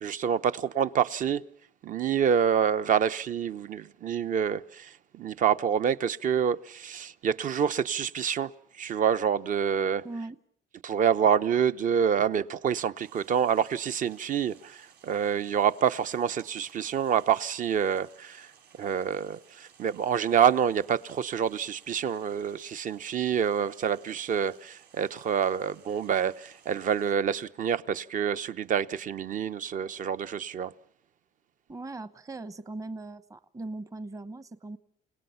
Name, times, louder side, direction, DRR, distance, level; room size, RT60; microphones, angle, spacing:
voice 1, 0.0-1.4 1.8-8.5 8.8-10.0 10.8-18.5 18.8-30.7, right 8 dB, 50° right, 13 dB, 0.9 m, -27 dB
voice 2, 10.0-10.4 31.7-34.8, right 2 dB, 20° right, 13 dB, 1.0 m, -39 dB
sound 1, 12.9-27.1, right 7 dB, 75° right, 7.4 m, -58 dB
29.0 x 18.0 x 5.7 m, 0.64 s
cardioid pair, 110°, 17 cm